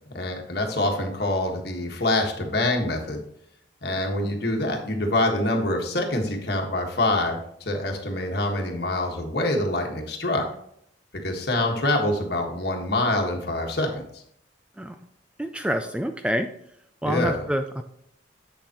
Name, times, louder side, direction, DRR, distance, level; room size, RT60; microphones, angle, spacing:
voice 1, 0.1-3.2 3.8-10.4 11.2-14.2 17.0-17.4, left 1 dB, 55° left, 2 dB, 1.6 m, -25 dB
voice 2, 15.4-16.5 17.0-17.8, equal, 5° right, 7 dB, 0.3 m, -27 dB
8.0 x 7.2 x 3.0 m, 0.72 s
head